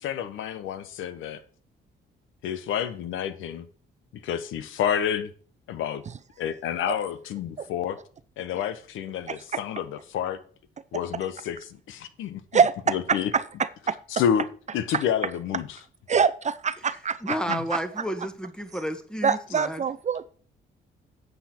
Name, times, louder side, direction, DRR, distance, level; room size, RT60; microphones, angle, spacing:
voice 1, 0.0-1.4 2.4-3.7 4.2-5.3 5.7-6.0 6.4-8.0 8.4-10.4 10.9-12.4 12.9-13.3 14.1-14.4 14.7-15.8 17.5-17.6, left 9 dB, 85° left, 0.9 m, -29 dB
voice 2, 9.3-9.6 12.5-13.4 13.9-14.0 16.1-16.3 16.6-17.8 19.2-20.2, right 6 dB, 35° right, 0.5 m, -24 dB
voice 3, 17.2-19.8, equal, 5° left, 1.4 m, -31 dB
8.0 x 7.6 x 4.3 m
cardioid pair, 90°, 20 cm